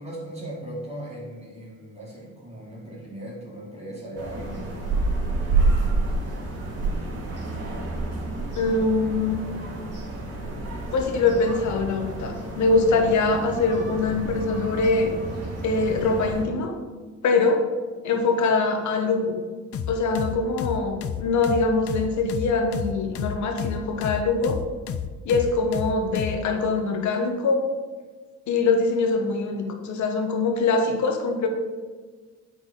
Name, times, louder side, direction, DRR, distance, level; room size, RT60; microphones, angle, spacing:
voice 1, 0.0-4.7, right 1 dB, 20° right, -5 dB, 2.2 m, -38 dB
sound 1, 4.2-16.4, right 3 dB, 55° right, 2.7 m, -29 dB
voice 2, 8.6-9.4 10.9-15.1 15.6-16.7 17.2-17.6 18.0-19.4 19.9-24.6 25.2-27.7 28.5-31.5, left 3 dB, 70° left, 4 dB, 1.3 m, -23 dB
sound 2, 19.7-26.4, left 8 dB, 50° left, 0.6 m, -31 dB
8.5 x 4.5 x 5.3 m, 1.4 s
cardioid pair, 90°, 30 cm